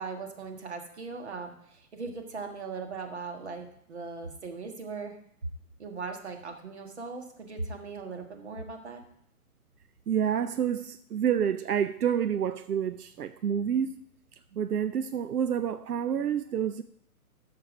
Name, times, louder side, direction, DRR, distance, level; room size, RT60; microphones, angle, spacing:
voice 1, 0.0-5.2 5.8-9.0, right 4 dB, 45° right, 1.7 m, -39 dB
voice 2, 10.1-13.9 14.5-16.8, right 8 dB, 85° right, 0.7 m, -28 dB
12.0 x 7.1 x 4.9 m
hypercardioid pair, 180°, 45 cm